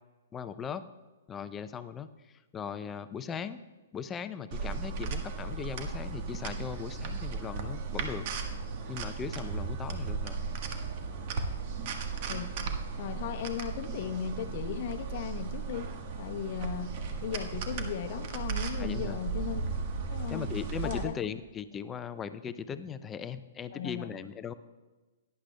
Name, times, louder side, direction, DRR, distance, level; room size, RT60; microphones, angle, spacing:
voice 1, 0.3-0.8 1.3-2.1 2.5-3.6 3.9-8.3 8.9-10.4 18.8-19.2 20.3-24.5, left 7 dB, 20° left, 12 dB, 0.5 m, -38 dB
sound 1, 4.5-21.0, right 5 dB, 45° right, 1.3 m, -36 dB
sound 2, 4.8-12.8, equal, 70° right, 1.3 m, -47 dB
voice 2, 13.0-15.9 16.2-16.9 17.2-19.6 20.0-20.5 20.8-21.1 23.7-24.1, left 9 dB, 50° left, 7 dB, 0.8 m, -36 dB
17.5 x 10.5 x 2.2 m, 1.2 s
figure-of-eight pair, 120°, 0 cm